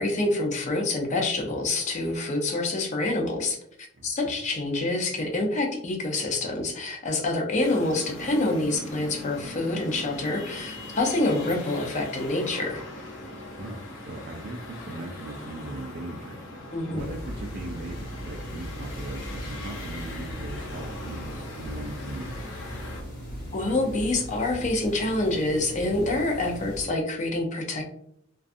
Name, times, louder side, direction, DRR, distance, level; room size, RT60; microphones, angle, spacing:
voice 1, 0.0-3.6 4.0-12.8 16.7-17.1 23.5-27.8, left 2 dB, 40° left, 2 dB, 0.5 m, -27 dB
voice 2, 4.0-4.3 13.5-13.8 14.1-16.3 16.9-22.4, right 2 dB, 50° right, 1 dB, 0.3 m, -38 dB
sound 1, 7.6-23.0, left 1 dB, 80° left, 0.7 m, -40 dB
sound 2, 17.0-26.8, equal, 55° left, 1.2 m, -39 dB
2.5 x 2.3 x 2.5 m, 0.70 s
head